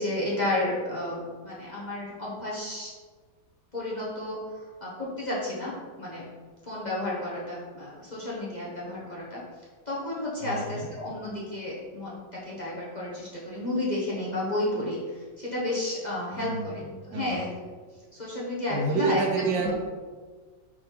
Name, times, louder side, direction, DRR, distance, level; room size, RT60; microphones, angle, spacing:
voice 1, 0.0-2.9 3.7-4.4 4.8-6.2 6.6-9.4 9.9-17.5 18.1-19.2 19.6-19.7, left 1 dB, 25° left, -7 dB, 1.1 m, -32 dB
voice 2, 10.4-10.9 16.3-17.5 18.7-19.7, right 4 dB, 65° right, -1 dB, 1.6 m, -29 dB
6.3 x 4.7 x 3.9 m, 1.5 s
omnidirectional pair, 2.2 m